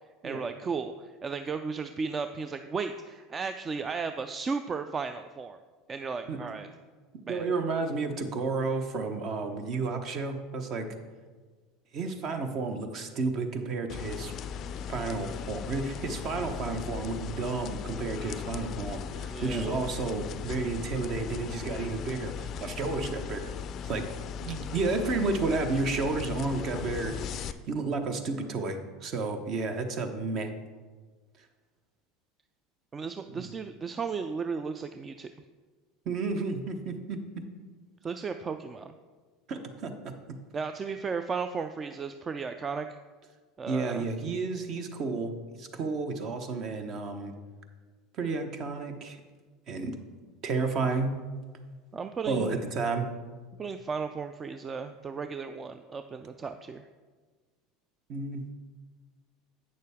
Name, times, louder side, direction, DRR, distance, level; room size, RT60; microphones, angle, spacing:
voice 1, 0.2-5.6 5.9-6.7 7.3-7.5 19.3-19.8 32.9-35.3 38.0-38.9 40.5-43.0 43.6-44.0 51.9-52.6 53.6-56.8, right 5 dB, 30° right, 9 dB, 0.3 m, -35 dB
voice 2, 7.1-10.9 11.9-14.3 14.9-23.5 23.8-24.1 24.4-30.5 33.3-33.5 36.0-37.4 39.5-40.1 43.7-47.3 48.1-49.2 49.7-50.0 50.4-51.2 52.3-53.1 58.1-58.4, right 3 dB, 50° right, 7 dB, 0.9 m, -32 dB
sound 1, 13.9-27.5, left 7 dB, 45° left, 0.4 m, -38 dB
8.5 x 6.5 x 3.5 m, 1.4 s
hypercardioid pair, 80°, 0 cm